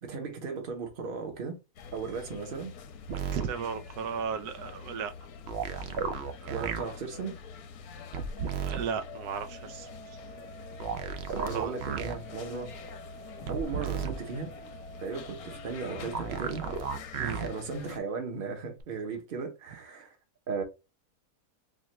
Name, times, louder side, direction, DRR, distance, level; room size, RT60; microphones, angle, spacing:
voice 1, 0.0-1.6 1.9-2.7 6.5-7.4 11.3-12.7 13.5-14.5 15.0-16.6 17.2-20.1 20.5-20.6, right 5 dB, 40° right, 1.0 m, -36 dB
sound 1, 1.8-18.0, left 6 dB, 80° left, 1.1 m, -46 dB
sound 2, 3.1-3.5 5.5-6.8 8.1-8.8 10.8-12.2 13.5-14.2 16.1-17.5 18.8-18.9, right 6 dB, 65° right, 0.6 m, -33 dB
voice 2, 3.3-5.1 6.4-6.7 8.7-10.2 11.5-11.8 17.2-17.4, right 6 dB, 85° right, 1.2 m, -36 dB
sound 3, 8.4-17.0, right 5 dB, 60° left, 1.0 m, -49 dB
4.4 x 2.4 x 3.0 m
omnidirectional pair, 1.6 m